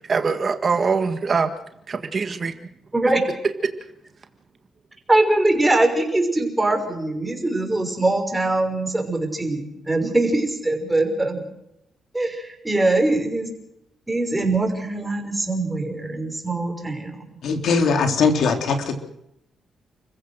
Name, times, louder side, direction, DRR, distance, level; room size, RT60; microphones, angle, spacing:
voice 1, 0.1-1.5 1.9-2.5, right 5 dB, 40° right, 7 dB, 1.8 m, -22 dB
voice 2, 2.9-3.2 5.1-11.5 12.1-13.5 14.1-17.2, right 2 dB, 15° right, 4 dB, 5.9 m, -22 dB
voice 3, 17.4-19.0, left 4 dB, 70° left, 4 dB, 3.8 m, -20 dB
30.0 x 15.5 x 6.5 m, 0.80 s
cardioid pair, 100°, 0 cm